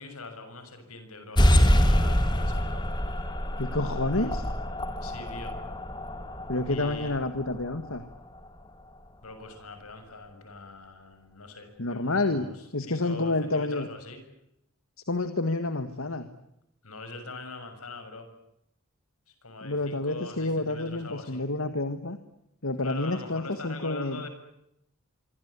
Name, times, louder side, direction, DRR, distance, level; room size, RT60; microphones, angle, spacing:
voice 1, 0.0-2.8 5.0-5.6 6.7-7.2 9.2-14.2 16.8-18.3 19.4-21.4 22.8-24.3, left 3 dB, 90° left, 8 dB, 6.8 m, -42 dB
sound 1, 1.4-8.5, equal, 20° left, 2.3 m, -26 dB
voice 2, 3.6-4.4 6.5-8.0 11.8-13.9 15.1-16.3 19.6-22.2 22.6-24.3, left 2 dB, 70° left, 9 dB, 1.8 m, -29 dB
26.0 x 24.0 x 8.4 m, 0.80 s
head